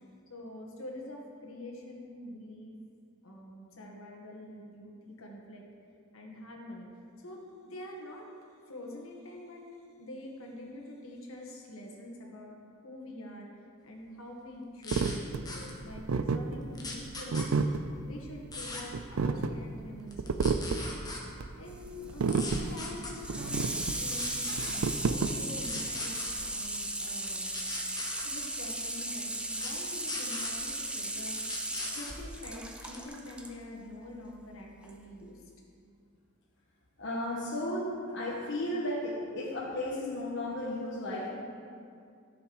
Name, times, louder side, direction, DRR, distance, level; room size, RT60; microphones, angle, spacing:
voice 1, 0.3-2.8 3.2-5.6 6.1-6.9 7.2-8.3 8.7-9.6 10.0-12.5 12.8-13.5 13.8-17.6 18.0-21.1 21.6-26.1 26.4-27.5 28.2-31.4 31.9-35.4, left 1 dB, 80° left, -1 dB, 1.8 m, -45 dB
sound 1, 14.8-15.2 15.5-15.7 16.7-17.5 18.5-18.8 20.1-21.2 22.3-23.1 24.1-24.8 25.6-26.3 27.5-28.3 29.6-29.7 30.1-30.5 31.4-32.2 32.8-33.1, left 3 dB, 20° left, 1.3 m, -39 dB
sound 2, 14.9-25.9, right 4 dB, 90° right, 0.5 m, -31 dB
Water tap faucet / Sink (filling or washing), 21.7-33.5 34.8-34.9, right 1 dB, 5° right, 0.6 m, -37 dB
voice 2, 37.0-41.3, left 1 dB, 60° left, -5 dB, 1.3 m, -34 dB
13.5 x 6.4 x 4.8 m, 2.4 s
head